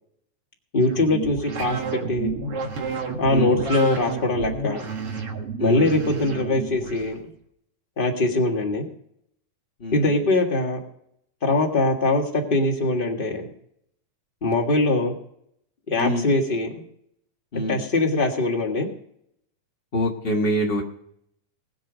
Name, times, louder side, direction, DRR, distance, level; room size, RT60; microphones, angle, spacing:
voice 1, 0.7-1.8 2.1-2.3 3.2-4.8 5.6-7.2 8.0-8.9 9.9-10.8 11.4-13.5 14.4-15.1 15.9-16.8 17.7-18.9, left 2 dB, 35° left, 1 dB, 0.8 m, -22 dB
sound 1, 0.8-7.2, right 4 dB, 50° right, 2.4 m, -31 dB
voice 2, 3.3-3.6 5.6-5.9 9.8-10.3 16.0-16.2 17.5-17.8 19.9-20.8, equal, 80° left, 0 dB, 0.5 m, -25 dB
20.0 x 7.3 x 5.0 m, 0.71 s
omnidirectional pair, 3.8 m